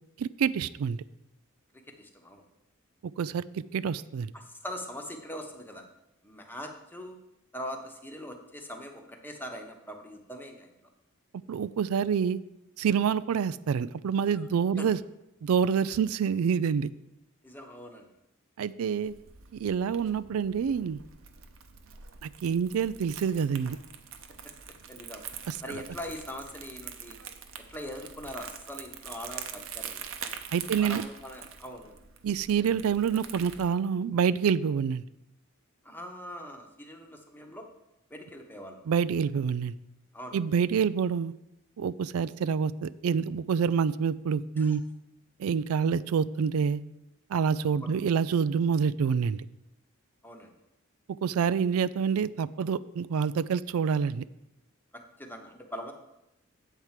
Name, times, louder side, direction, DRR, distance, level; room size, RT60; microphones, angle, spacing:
voice 1, 0.2-1.0 3.2-4.3 11.5-12.4 12.8-15.0 15.4-16.9 18.6-19.1 19.6-21.0 22.2-23.8 25.5-25.8 30.5-31.1 32.2-35.0 38.9-39.7 40.3-41.3 41.8-44.8 45.4-46.8 47.3-49.5 51.2-54.2, right 6 dB, 90° right, 16 dB, 0.4 m, -27 dB
voice 2, 1.7-2.4 4.3-5.8 6.2-7.2 7.5-10.7 14.3-14.4 14.8-14.9 17.4-18.1 24.9-25.2 25.6-27.2 27.6-30.0 30.6-32.0 35.8-37.7 38.1-38.8 40.1-40.4 44.6-44.8 47.8-48.0 50.2-50.5 54.9-55.9, equal, 10° left, 3 dB, 1.0 m, -42 dB
Crumpling crinkling, 19.0-33.7, right 8 dB, 65° right, 0.8 m, -44 dB
8.2 x 4.6 x 7.3 m, 0.87 s
head